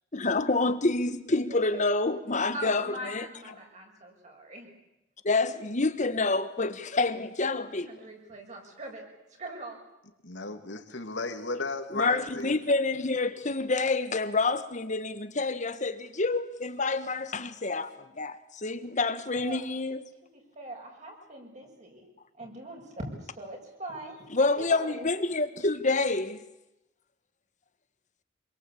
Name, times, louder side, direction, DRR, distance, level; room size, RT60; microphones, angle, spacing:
voice 1, 0.1-3.3 5.2-7.9 11.9-20.1 24.3-26.4, left 3 dB, 40° left, 1.4 m, -28 dB
voice 2, 1.3-1.6 2.5-4.7 7.8-9.0 9.4-9.8 19.4-19.6 20.3-22.1 22.4-25.1, right 1 dB, 40° right, 7.0 m, -42 dB
voice 3, 10.2-12.5, left 3 dB, 70° left, 2.7 m, -34 dB
26.5 x 23.0 x 8.5 m
head